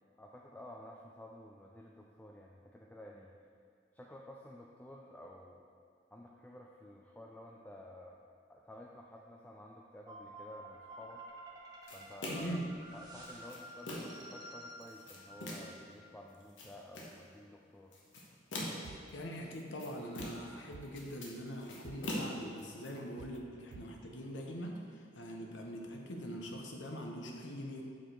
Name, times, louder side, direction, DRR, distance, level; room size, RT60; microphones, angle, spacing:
voice 1, 0.2-3.3 3.9-5.6 6.1-8.2 8.5-11.2 11.9-12.6 12.9-17.9, left 1 dB, 10° left, -1 dB, 0.3 m, -52 dB
sound 1, 10.1-16.2, right 1 dB, 20° right, 1.1 m, -51 dB
sound 2, 11.9-12.6 13.2-14.3 14.8-15.8 16.3-17.2 17.9-19.0 19.5-20.6 20.8-22.9, left 1 dB, 85° left, 1.2 m, -43 dB
voice 2, 12.3-12.7 18.8-27.8, equal, 70° left, 1 dB, 0.9 m, -43 dB
sound 3, 18.8-19.0 19.4-19.6 20.0-21.1 21.5-21.6 21.8-22.0 22.4-22.6 23.0-23.4 23.7-23.9, right 7 dB, 80° right, 0.3 m, -51 dB
7.4 x 4.9 x 4.5 m, 2.3 s
head